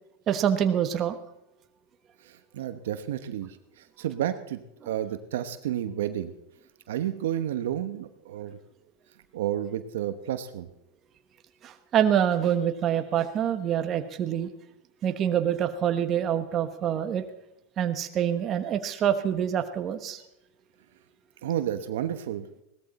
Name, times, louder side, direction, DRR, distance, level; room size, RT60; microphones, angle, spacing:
voice 1, 0.3-1.2 11.6-14.5 15.0-17.2 17.8-20.2, right 9 dB, 35° right, 8 dB, 1.1 m, -26 dB
voice 2, 2.2-6.3 6.9-8.6 9.3-10.7 21.4-22.5, right 11 dB, 80° right, 10 dB, 1.1 m, -31 dB
17.5 x 13.5 x 4.2 m, 0.87 s
supercardioid pair, 130°, 0 cm